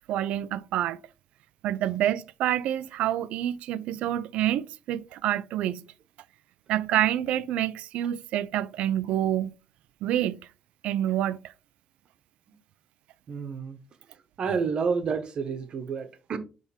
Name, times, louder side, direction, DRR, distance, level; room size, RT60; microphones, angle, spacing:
voice 1, 0.1-1.0 1.6-5.9 6.7-9.5 10.0-10.4 10.8-11.5, right 12 dB, 90° right, 0.4 m, -27 dB
voice 2, 13.3-13.8 14.4-16.4, right 5 dB, 50° right, 1.1 m, -29 dB
7.3 x 3.4 x 4.2 m
cardioid pair, 140°, 2 cm